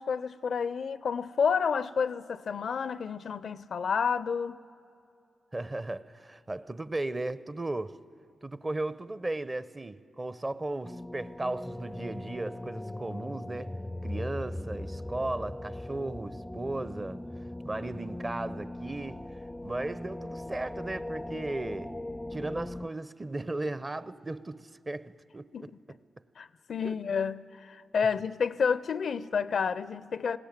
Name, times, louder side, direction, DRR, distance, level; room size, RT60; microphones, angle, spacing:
voice 1, 0.0-4.6 25.5-25.7 26.4-30.4, left 6 dB, 65° left, 0.5 m, -30 dB
voice 2, 5.5-8.0 8.4-17.2 17.6-19.3 19.6-22.0 22.3-26.0 26.8-27.0, right 2 dB, 30° right, 0.7 m, -36 dB
sound 1, 10.8-22.9, left 1 dB, 15° left, 0.4 m, -39 dB
20.5 x 16.5 x 8.9 m
supercardioid pair, 45°, 0 cm